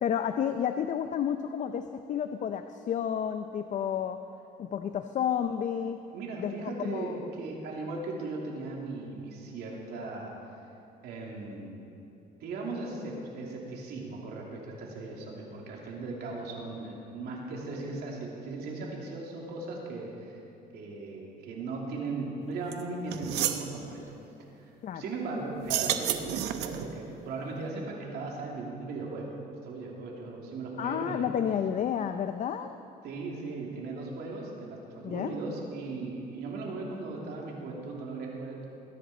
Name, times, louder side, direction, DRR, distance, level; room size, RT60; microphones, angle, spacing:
voice 1, 0.0-4.2 4.6-6.0 6.4-6.5 6.8-7.1 24.8-25.0 30.8-32.7 35.0-35.3, left 8 dB, 45° left, 8 dB, 0.5 m, -31 dB
voice 2, 6.1-10.3 11.0-11.8 12.4-20.4 20.7-24.2 24.6-29.4 29.6-31.3 33.0-38.7, right 3 dB, 70° right, -2 dB, 2.9 m, -38 dB
sound 1, 22.7-22.8 23.1-23.7 25.6-26.9, right 11 dB, 90° right, 0.8 m, -30 dB
21.5 x 10.0 x 4.3 m, 2.9 s
cardioid pair, 110°, 17 cm